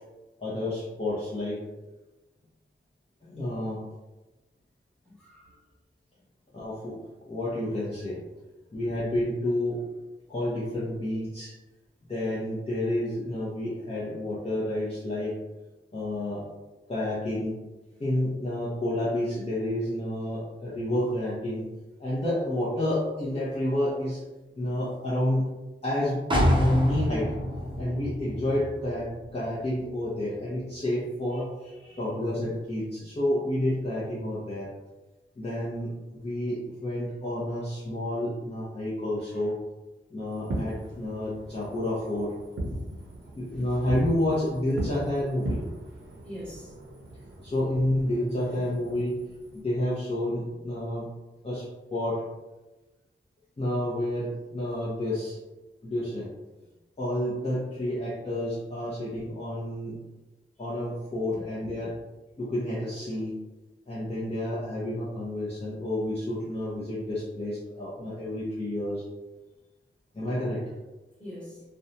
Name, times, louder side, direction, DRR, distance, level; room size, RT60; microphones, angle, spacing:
voice 1, 0.4-1.6 3.2-3.8 6.5-7.0 7.2-8.2 8.7-9.8 10.3-11.5 12.1-15.4 15.9-16.4 16.9-17.6 18.0-21.6 22.0-24.2 24.6-25.5 25.8-26.2 26.5-27.3 27.8-31.5 32.0-34.7 35.4-39.6 40.1-42.3 43.4-45.6 47.4-49.2 49.5-51.1 51.4-51.7 51.9-52.2 53.6-55.4 55.8-56.3 57.0-60.0 60.6-61.9 62.4-63.3 63.9-69.0 70.1-70.6, left 1 dB, 30° left, -9 dB, 0.7 m, -30 dB
voice 2, 5.0-5.6 31.3-31.4 31.8-32.0 43.2-43.3 46.2-46.7 48.5-48.6 61.3-61.4 61.8-61.9 71.2-71.6, equal, 5° left, -8 dB, 1.2 m, -43 dB
sound 1, 26.3-30.1 30.4-30.5, equal, 25° right, 0.6 m, -28 dB
Fireworks, 40.3-49.6, right 1 dB, 70° right, 0.6 m, -38 dB
2.5 x 2.2 x 2.7 m, 1.1 s
wide cardioid pair, 80°, 21 cm